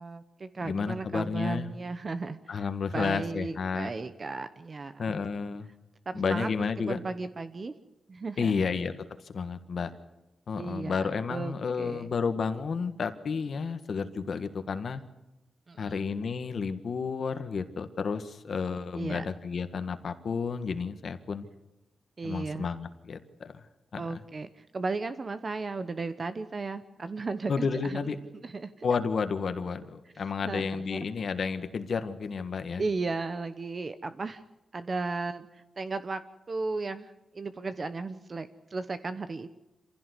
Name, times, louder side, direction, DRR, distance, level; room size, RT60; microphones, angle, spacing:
voice 1, 0.0-5.0 6.1-6.5 6.9-7.7 8.1-8.6 10.5-12.1 15.7-16.1 19.0-19.2 22.2-22.7 24.0-28.0 28.4-28.9 30.4-31.0 32.8-34.4 34.7-36.2 36.5-39.5, right 3 dB, 35° right, 11 dB, 0.9 m, -35 dB
voice 2, 0.6-1.7 2.5-3.9 5.0-5.7 6.1-7.0 8.4-8.9 9.2-9.9 10.5-15.0 15.8-21.5 22.2-23.6 23.9-24.2 27.5-28.2 28.8-32.8, left 5 dB, 60° left, 9 dB, 1.6 m, -31 dB
26.5 x 16.0 x 8.2 m, 0.99 s
wide cardioid pair, 125°, 0 cm